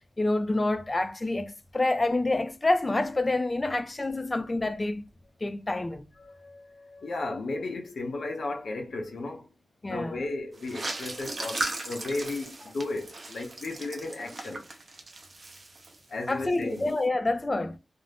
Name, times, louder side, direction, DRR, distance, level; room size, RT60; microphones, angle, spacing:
voice 1, 0.2-5.0 5.4-6.0 9.8-10.2 16.3-17.8, left 2 dB, 25° left, 0.3 m, -27 dB
voice 2, 6.2-9.5 9.8-14.6 16.1-16.9, left 2 dB, 75° left, 0.7 m, -35 dB
sound 1, 10.6-16.3 16.6-17.0, right 2 dB, 45° right, 0.6 m, -37 dB
2.5 x 2.0 x 3.2 m
wide cardioid pair, 135°, 0 cm